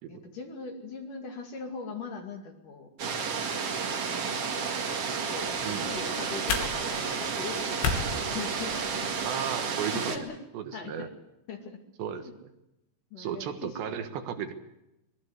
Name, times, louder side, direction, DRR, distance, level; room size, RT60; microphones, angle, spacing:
voice 1, 0.1-2.9 4.1-4.5 5.3-9.1 9.9-10.4 10.7-11.1 11.5-11.8 12.2-12.3 13.1-13.8 14.3-14.5, left 5 dB, 50° left, 4 dB, 3.4 m, -41 dB
sound 1, 3.0-10.2, right 5 dB, 45° right, 2.3 m, -31 dB
sound 2, 5.4-9.3, left 5 dB, 80° left, 5.0 m, -35 dB
voice 2, 5.6-5.9 9.3-10.3 10.5-11.1 12.0-12.5 13.2-14.5, right 8 dB, 75° right, 8 dB, 3.7 m, -35 dB
23.5 x 21.0 x 8.0 m, 0.89 s
omnidirectional pair, 5.2 m